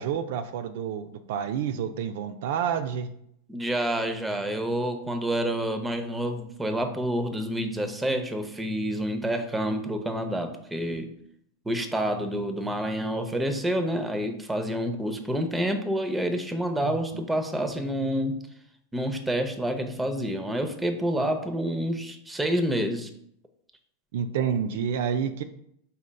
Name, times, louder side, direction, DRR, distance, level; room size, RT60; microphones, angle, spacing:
voice 1, 0.0-3.1 16.8-17.0 24.1-25.4, right 8 dB, 65° right, 9 dB, 0.3 m, -29 dB
voice 2, 3.5-11.1 11.7-18.4 18.9-23.1, right 1 dB, 10° right, 6 dB, 0.6 m, -28 dB
4.9 x 4.1 x 2.2 m, 0.71 s
hypercardioid pair, 100°, 0 cm